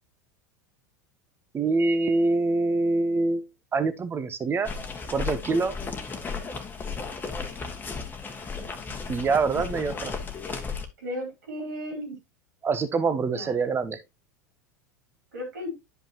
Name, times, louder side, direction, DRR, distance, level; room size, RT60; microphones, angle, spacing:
voice 1, 1.5-3.4 3.7-4.7 5.1-5.8 9.1-10.1 12.6-14.0, right 3 dB, 25° right, 1.1 m, -25 dB
sound 1, 4.6-10.9, left 5 dB, 20° left, 1.5 m, -34 dB
voice 2, 11.0-12.2 13.3-13.6 15.3-15.7, left 1 dB, 80° right, 4.3 m, -35 dB
10.5 x 5.2 x 2.9 m
hypercardioid pair, 85°, 9 cm